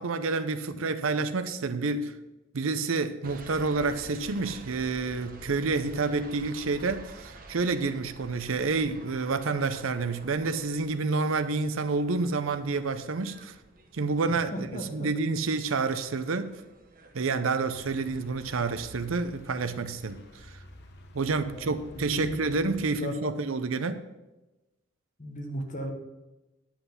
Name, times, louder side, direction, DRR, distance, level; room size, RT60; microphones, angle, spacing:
voice 1, 0.0-2.1 2.5-13.5 13.9-14.5 14.9-16.5 17.1-20.2 21.1-24.0, right 3 dB, 85° right, 0.7 m, -29 dB
sound 1, 3.2-17.7, right 2 dB, 45° right, 1.0 m, -50 dB
voice 2, 14.3-15.1 21.5-23.3 25.2-25.9, equal, 40° left, 1.3 m, -36 dB
sound 2, 17.7-22.8, left 1 dB, 55° left, 1.0 m, -49 dB
9.8 x 5.8 x 5.7 m
head